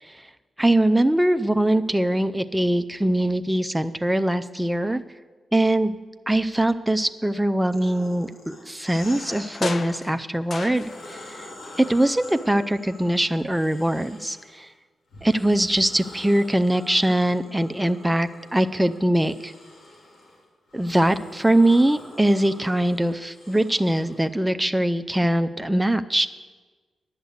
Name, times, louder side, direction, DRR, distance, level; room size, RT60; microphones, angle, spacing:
voice 1, 0.6-5.0 5.5-5.9 6.3-11.5 11.8-14.7 15.2-19.5 20.7-26.3, right 1 dB, 10° right, 9 dB, 0.5 m, -22 dB
sound 1, 7.7-10.0 10.5-14.6 15.1-24.3, left 1 dB, 75° left, 2.5 m, -45 dB
sound 2, 8.9-11.4 11.6-12.7 13.0-13.1, left 4 dB, 50° left, 0.5 m, -35 dB
11.0 x 6.7 x 8.0 m, 1.3 s
cardioid pair, 65°, 0 cm